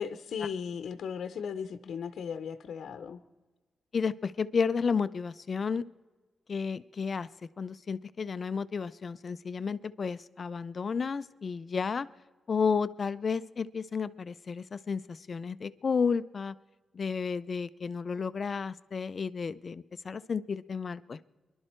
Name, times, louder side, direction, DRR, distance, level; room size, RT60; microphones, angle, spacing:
voice 1, 0.0-3.2, left 7 dB, 70° left, 10 dB, 0.7 m, -36 dB
voice 2, 3.9-5.8 6.5-7.3 7.6-12.1 12.5-16.6 16.9-21.3, left 5 dB, 35° left, 15 dB, 0.4 m, -32 dB
24.0 x 12.0 x 4.4 m, 1.2 s
wide cardioid pair, 180°, 0 cm